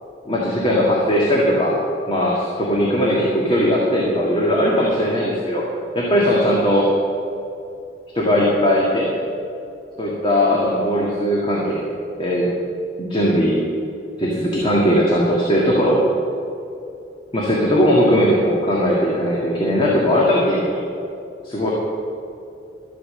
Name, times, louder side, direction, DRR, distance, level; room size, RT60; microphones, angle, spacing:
voice 1, 0.3-1.7 2.1-5.6 5.9-6.9 8.1-9.1 10.0-11.9 12.2-12.5 13.0-13.6 14.2-16.0 17.3-20.8 21.4-21.7, equal, 30° left, -4 dB, 1.9 m, -18 dB
12.5 x 8.5 x 7.6 m, 2.6 s
head